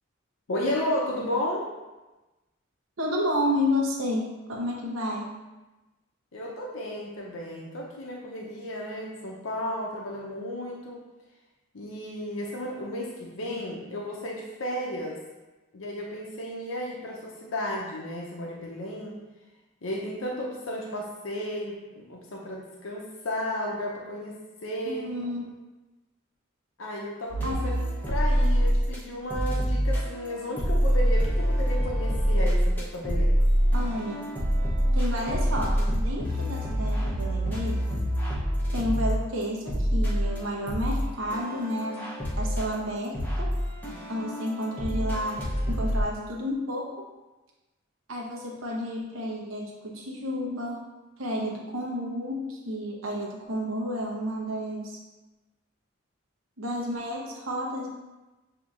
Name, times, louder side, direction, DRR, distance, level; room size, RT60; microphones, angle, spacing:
voice 1, 0.5-1.7 6.3-11.0 11.7-15.2 15.7-19.2 19.8-25.1 26.8-33.4, left 1 dB, 85° left, -2 dB, 0.6 m, -33 dB
voice 2, 3.0-5.3 24.9-25.6 27.4-27.7 33.7-34.3 34.9-37.8 38.7-43.5 44.1-47.1 48.1-50.8 51.2-55.0 56.6-57.9, left 1 dB, 85° right, -2 dB, 0.9 m, -31 dB
sound 1, 27.3-29.0 29.3-46.0, equal, 10° left, 0.7 m, -26 dB
6.8 x 2.8 x 2.5 m, 1.1 s
head